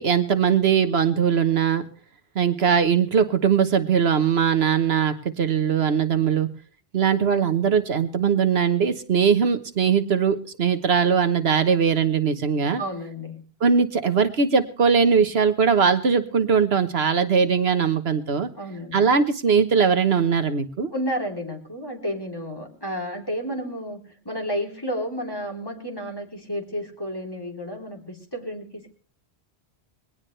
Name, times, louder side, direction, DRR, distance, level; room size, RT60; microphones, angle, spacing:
voice 1, 0.0-1.8 2.3-6.5 6.9-12.8 13.6-18.5 18.9-20.9, right 6 dB, 70° right, 9 dB, 1.4 m, -20 dB
voice 2, 12.8-13.4 18.6-19.1 20.9-28.9, equal, 20° left, 2 dB, 3.5 m, -31 dB
21.5 x 18.0 x 3.3 m, 0.40 s
omnidirectional pair, 1.1 m